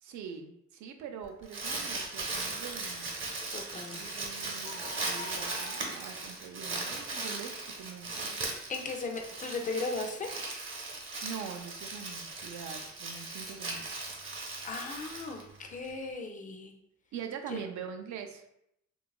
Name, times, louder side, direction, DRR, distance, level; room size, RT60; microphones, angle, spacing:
voice 1, 0.0-3.1 3.9-8.4 10.8-10.9 11.2-14.1 17.1-18.4, right 7 dB, 70° right, 4 dB, 0.5 m, -43 dB
Crumpling crinkling, 1.2-15.9, right 3 dB, 45° right, 0.8 m, -38 dB
voice 2, 3.5-4.0 8.7-10.4 14.6-16.7 17.5-17.6, left 3 dB, 25° left, 3 dB, 0.4 m, -37 dB
sound 1, 3.9-4.1 4.6-6.7, left 2 dB, 85° left, 0.5 m, -48 dB
2.8 x 2.3 x 2.3 m, 0.78 s
cardioid pair, 90°, 30 cm